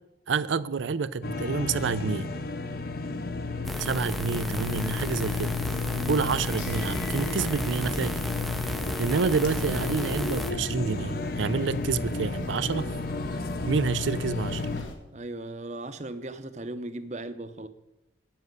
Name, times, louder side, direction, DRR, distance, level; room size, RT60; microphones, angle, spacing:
voice 1, 0.3-2.3 3.8-5.5 6.1-8.2 8.6-12.9 13.7-14.7, right 5 dB, 80° right, 0.5 m, -28 dB
sound 1, 1.2-14.8, left 3 dB, 50° left, 0.7 m, -32 dB
sound 2, 3.6-10.5, equal, ahead, 0.4 m, -34 dB
sound 3, 5.2-14.9, left 1 dB, 90° left, 1.8 m, -42 dB
voice 2, 5.9-6.3 15.1-17.7, right 2 dB, 35° right, 0.7 m, -37 dB
9.6 x 7.6 x 7.8 m
head